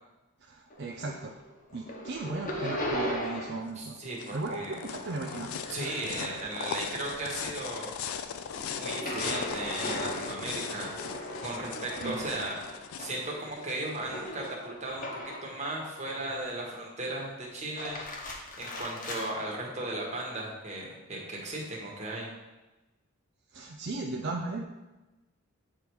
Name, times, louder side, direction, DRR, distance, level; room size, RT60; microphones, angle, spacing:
voice 1, 0.5-1.3 1.7-4.0 4.3-5.5 12.0-12.5 23.5-24.6, right 3 dB, 50° right, 2 dB, 0.4 m, -36 dB
sound 1, 0.7-1.4 1.7-3.7 4.0-6.9 7.2-15.6 16.0-16.7 17.6-19.3, left 1 dB, 35° left, 1.0 m, -39 dB
sound 2, 3.7-14.5, left 7 dB, 70° left, 0.4 m, -39 dB
voice 2, 3.7-4.8 5.7-7.9 8.5-11.0 11.4-18.2 18.6-22.3, right 2 dB, 30° right, -2 dB, 1.4 m, -36 dB
8.6 x 3.4 x 4.6 m, 1.1 s
head